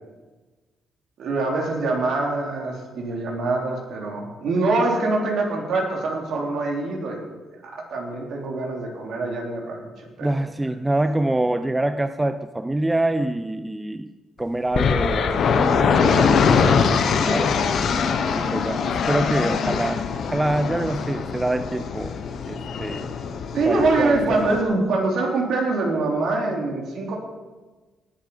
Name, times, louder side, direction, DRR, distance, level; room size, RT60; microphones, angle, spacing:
voice 1, 1.2-7.2 7.6-9.9 10.2-10.3 23.5-27.2, right 3 dB, 70° right, 0 dB, 3.4 m, -24 dB
voice 2, 10.2-14.1 14.4-17.9 18.4-20.1 20.3-22.1 22.5-23.1 23.7-24.5, right 1 dB, 15° right, 11 dB, 0.5 m, -26 dB
sound 1, 14.7-24.6, left 6 dB, 65° left, 1.1 m, -22 dB
18.5 x 7.4 x 5.4 m, 1.3 s
cardioid pair, 90°, 0 cm